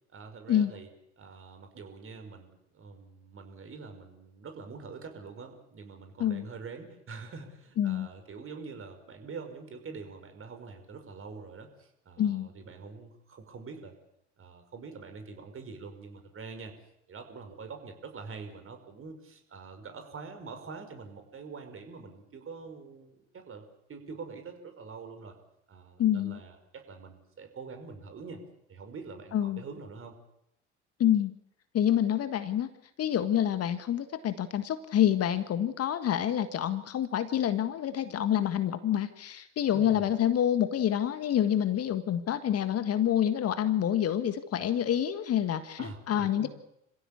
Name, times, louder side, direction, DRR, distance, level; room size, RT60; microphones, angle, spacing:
voice 1, 0.1-0.9 1.2-13.9 14.4-16.7 17.1-23.6 23.9-25.4 25.7-28.4 28.7-30.1 39.7-40.1 45.8-46.5, right 4 dB, 35° right, 6 dB, 5.5 m, -45 dB
voice 2, 7.8-8.1 12.2-12.5 26.0-26.4 29.3-29.6 31.0-31.3 31.7-32.7 33.0-46.5, left 10 dB, 40° left, 11 dB, 1.7 m, -27 dB
27.0 x 16.0 x 8.6 m, 0.79 s
hypercardioid pair, 65°, 35 cm